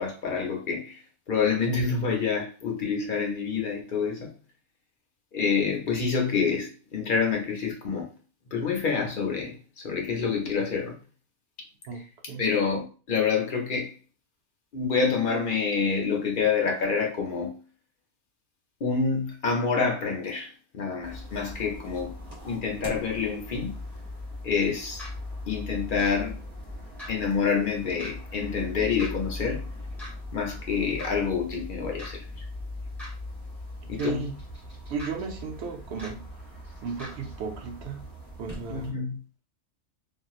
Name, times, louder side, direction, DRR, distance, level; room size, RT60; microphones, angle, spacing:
voice 1, 0.0-4.3 5.3-8.1 8.5-11.0 12.4-13.9 14.7-17.6 18.8-22.2 22.4-23.7 24.4-25.1 25.5-26.4 27.1-29.7 30.3-32.4 33.9-34.3 38.7-39.2, left 5 dB, 50° left, 0.7 m, -27 dB
voice 2, 11.9-12.5 33.8-34.3 34.9-36.2 36.8-38.0 38.4-39.0, right 4 dB, 70° right, 0.8 m, -34 dB
sound 1, 21.0-38.9, left 1 dB, 30° right, 1.2 m, -40 dB
sound 2, 25.0-25.1 26.0-26.1 27.0-27.1 28.0-28.1 29.0-29.1 30.0-30.1 31.0-31.1 32.0-32.1 33.0-33.1 34.0-34.1 35.0-35.1 36.0-36.1 37.0-37.1, equal, ahead, 1.1 m, -40 dB
2.9 x 2.5 x 2.3 m
omnidirectional pair, 1.3 m